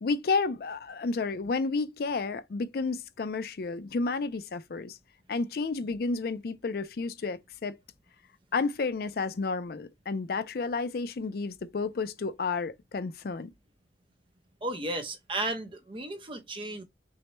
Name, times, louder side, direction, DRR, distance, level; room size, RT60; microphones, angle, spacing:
voice 1, 0.0-5.0 5.3-7.8 8.5-13.5, left 4 dB, 55° left, 0.4 m, -31 dB
voice 2, 14.6-16.8, right 2 dB, 30° right, 0.7 m, -34 dB
6.2 x 2.2 x 2.9 m
head